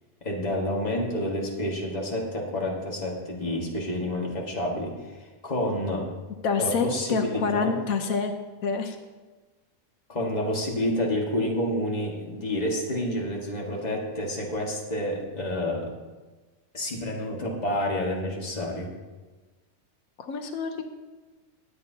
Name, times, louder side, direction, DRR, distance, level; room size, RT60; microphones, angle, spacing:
voice 1, 0.2-6.1 6.6-7.7 10.1-15.9 16.7-18.9, left 1 dB, 30° left, -1 dB, 1.8 m, -29 dB
voice 2, 6.4-8.3 8.6-9.0 20.2-20.8, left 5 dB, 90° left, 6 dB, 1.3 m, -27 dB
19.5 x 8.1 x 2.8 m, 1.3 s
omnidirectional pair, 1.4 m